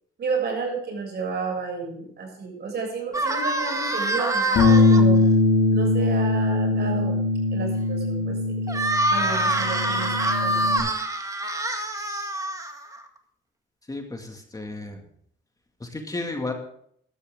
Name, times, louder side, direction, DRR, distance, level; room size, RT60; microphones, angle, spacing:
voice 1, 0.2-5.2 5.7-7.2 7.5-8.4 8.7-8.8 9.1-10.1 10.4-10.7, right 4 dB, 55° right, 1 dB, 6.8 m, -31 dB
sound 1, 3.1-5.0 8.7-13.0, right 1 dB, 15° right, 1.9 m, -25 dB
Bass guitar, 4.6-10.8, left 2 dB, 70° left, 5.3 m, -21 dB
voice 2, 13.9-15.0 15.9-16.5, left 2 dB, 20° left, 3 dB, 2.1 m, -32 dB
13.0 x 13.0 x 3.7 m, 0.65 s
cardioid pair, 90°, 20 cm